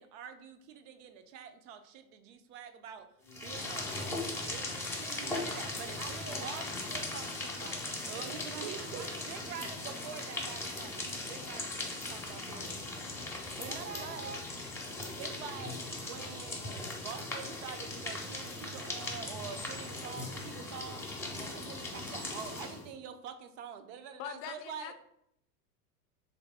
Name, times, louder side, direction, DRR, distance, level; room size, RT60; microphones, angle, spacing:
voice 1, 0.0-3.1 3.3-6.6 8.1-13.2 13.6-14.3 15.2-21.1 21.3-24.9, right 7 dB, 50° right, 9 dB, 0.5 m, -46 dB
sound 1, 3.3-22.9, left 2 dB, 5° left, 0.6 m, -39 dB
voice 2, 6.0-7.9 8.2-9.2 13.7-14.5, right 5 dB, 85° right, 6 dB, 0.7 m, -47 dB
voice 3, 24.2-24.9, left 9 dB, 55° left, 9 dB, 0.5 m, -43 dB
3.4 x 2.6 x 3.3 m, 0.75 s
hypercardioid pair, 100°, 47 cm